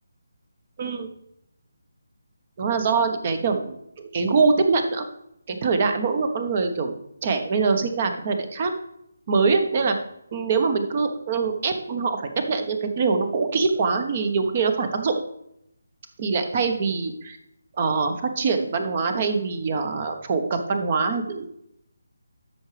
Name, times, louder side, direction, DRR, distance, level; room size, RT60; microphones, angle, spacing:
voice 1, 2.6-5.0 5.5-6.9 7.2-8.7 9.3-10.0 10.3-12.2 12.5-15.1 16.2-17.4 17.8-21.5, right 4 dB, 35° right, 7 dB, 1.1 m, -23 dB
13.0 x 5.8 x 3.3 m, 0.78 s
figure-of-eight pair, 150°, 0 cm